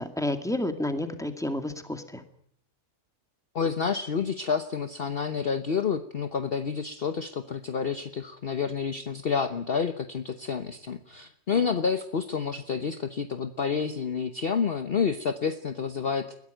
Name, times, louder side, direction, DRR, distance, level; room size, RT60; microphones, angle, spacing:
voice 1, 0.0-2.2, left 1 dB, ahead, 7 dB, 2.2 m, -30 dB
voice 2, 3.5-16.3, left 6 dB, 45° left, 9 dB, 1.1 m, -29 dB
21.5 x 16.0 x 9.2 m, 0.68 s
omnidirectional pair, 1.6 m